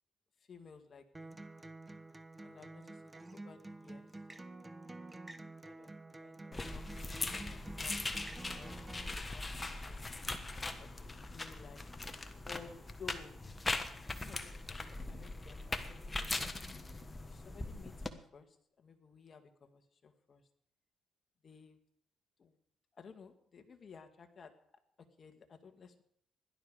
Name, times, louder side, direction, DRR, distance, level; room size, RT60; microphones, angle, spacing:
voice 1, 0.5-1.4 2.4-3.0 3.3-4.1 5.6-8.9 9.3-10.1 10.8-11.8 12.4-13.4 14.2-16.5 17.2-20.4 21.4-21.8 22.4-22.6 22.9-24.5 25.2-26.0, left 5 dB, 45° left, 7 dB, 1.8 m, -56 dB
Acoustic guitar, 1.1-9.1, right 2 dB, 20° right, 0.9 m, -49 dB
sound 1, 6.5-18.1, left 2 dB, 20° left, 1.3 m, -41 dB
16.5 x 12.0 x 5.0 m, 0.70 s
cardioid pair, 90°, 0 cm